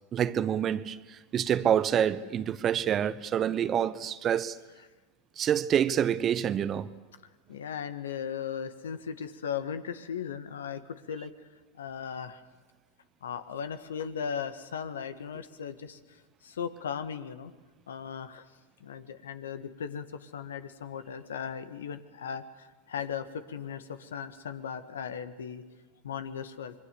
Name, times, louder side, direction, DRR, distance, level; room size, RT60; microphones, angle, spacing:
voice 1, 0.1-4.6 5.4-6.9, right 9 dB, 35° right, 1.0 m, -27 dB
voice 2, 7.5-11.3 11.8-12.4 13.2-16.0 16.4-17.5 17.9-18.5 18.8-25.6 26.0-26.7, left 7 dB, 80° left, 1.6 m, -37 dB
26.0 x 22.5 x 6.9 m
hypercardioid pair, 90°, 0 cm